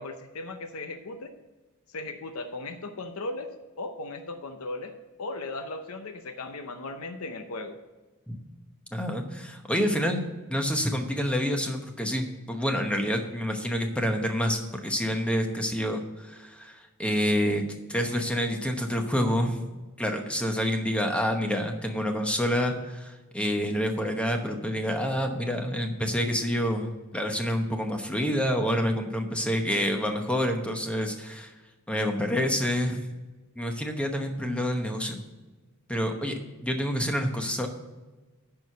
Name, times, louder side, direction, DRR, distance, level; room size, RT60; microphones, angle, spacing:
voice 1, 0.0-1.3 1.9-3.5 3.8-7.8, left 2 dB, 75° left, 7 dB, 0.7 m, -37 dB
voice 2, 8.9-10.2 10.5-19.6 20.0-31.5 31.9-33.0 33.6-35.3 35.9-37.7, equal, 5° left, 4 dB, 0.9 m, -28 dB
10.5 x 4.7 x 6.7 m, 1.2 s
head